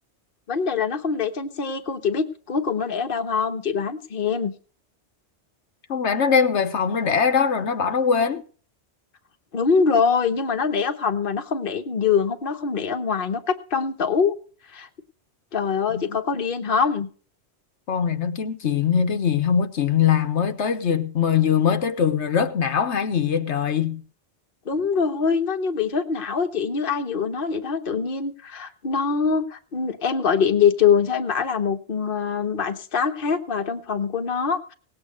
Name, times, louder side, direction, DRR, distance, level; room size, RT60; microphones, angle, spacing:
voice 1, 0.5-4.5 9.5-14.3 14.7-14.9 15.5-17.1 24.6-34.7, left 6 dB, 50° left, 1.3 m, -24 dB
voice 2, 5.9-8.4 15.9-16.2 17.9-24.0, left 7 dB, 80° left, 1.3 m, -22 dB
18.5 x 8.6 x 5.1 m
omnidirectional pair, 1.2 m